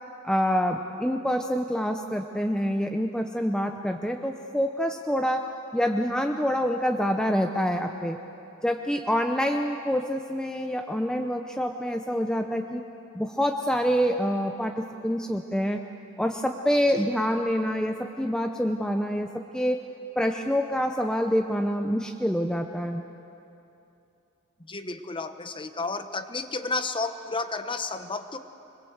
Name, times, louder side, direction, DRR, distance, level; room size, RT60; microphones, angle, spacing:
voice 1, 0.2-5.4 5.7-8.2 8.6-12.8 13.1-15.8 16.2-19.8 20.2-23.0, equal, 5° left, 4 dB, 0.7 m, -26 dB
voice 2, 24.6-28.4, left 3 dB, 25° left, 9 dB, 1.0 m, -32 dB
26.0 x 21.0 x 8.0 m, 2.8 s
head